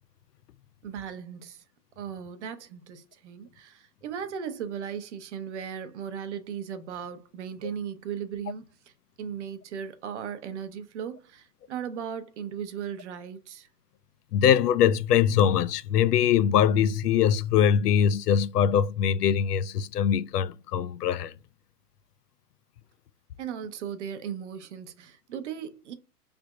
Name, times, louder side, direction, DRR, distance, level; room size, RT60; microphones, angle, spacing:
voice 1, 0.8-1.6 2.0-13.7 23.4-25.9, right 8 dB, 45° right, 0.7 m, -37 dB
voice 2, 14.3-21.3, left 9 dB, 70° left, 0.5 m, -22 dB
4.8 x 3.4 x 2.3 m
hypercardioid pair, 155°, 49 cm